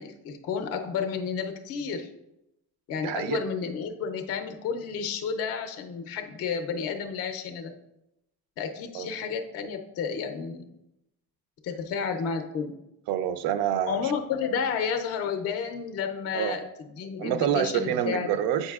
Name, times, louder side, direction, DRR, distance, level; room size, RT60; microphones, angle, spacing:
voice 1, 0.0-2.1 2.9-7.7 8.6-10.7 11.6-12.7 13.9-16.6 17.0-18.3, left 6 dB, 40° left, 6 dB, 0.5 m, -31 dB
voice 2, 3.0-3.4 8.9-9.1 13.1-14.1 16.3-16.6 17.2-18.7, right 9 dB, 65° right, 11 dB, 0.5 m, -27 dB
7.9 x 5.4 x 2.3 m, 0.87 s
cardioid pair, 180°, 40 cm